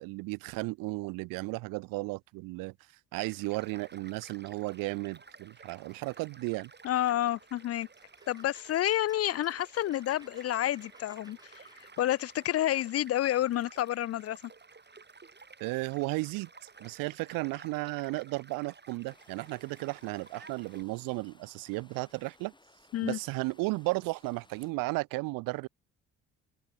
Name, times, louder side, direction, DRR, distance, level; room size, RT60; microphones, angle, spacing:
voice 1, 0.0-2.7 3.1-6.7 15.6-16.5 16.8-22.5 23.0-25.7, right 24 dB, 70° right, 0.6 m, -34 dB
Child speech kid speaking / Stream / Car passing by, 3.2-20.8, right 4 dB, 30° right, 5.6 m, -54 dB
voice 2, 6.8-7.9 8.3-11.6 12.0-14.4 22.9-23.2, left 13 dB, 45° left, 0.4 m, -29 dB
sound 1, 7.7-13.4, right 1 dB, 10° right, 5.1 m, -60 dB
sound 2, 19.1-24.7, left 2 dB, 15° left, 2.5 m, -62 dB
open air
hypercardioid pair, 55°, 35 cm